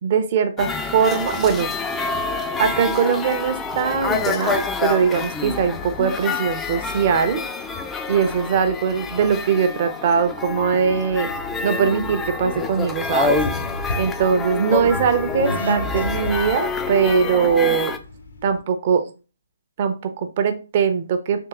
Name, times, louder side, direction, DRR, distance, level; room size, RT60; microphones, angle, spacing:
voice 1, 0.0-1.7 2.6-7.4 8.1-11.3 11.6-13.4 14.0-17.9 18.4-19.0 19.8-21.5, right 6 dB, 40° right, 8 dB, 0.6 m, -21 dB
sound 1, 0.6-18.0, left 4 dB, 10° left, 0.3 m, -27 dB
Accelerating revving vroom, 11.3-18.6, left 1 dB, 70° left, 0.7 m, -33 dB
3.5 x 2.8 x 2.9 m, 0.33 s
figure-of-eight pair, 135°, 0 cm